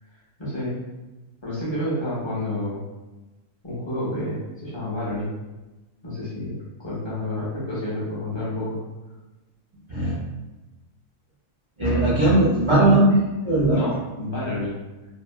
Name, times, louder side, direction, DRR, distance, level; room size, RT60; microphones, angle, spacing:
voice 1, 0.4-0.8 1.4-2.8 3.6-5.3 6.0-8.8 13.7-14.8, left 1 dB, 25° left, -8 dB, 0.8 m, -29 dB
voice 2, 11.8-13.8, right 1 dB, 35° right, -8 dB, 0.5 m, -18 dB
2.8 x 2.3 x 2.2 m, 1.1 s
omnidirectional pair, 1.4 m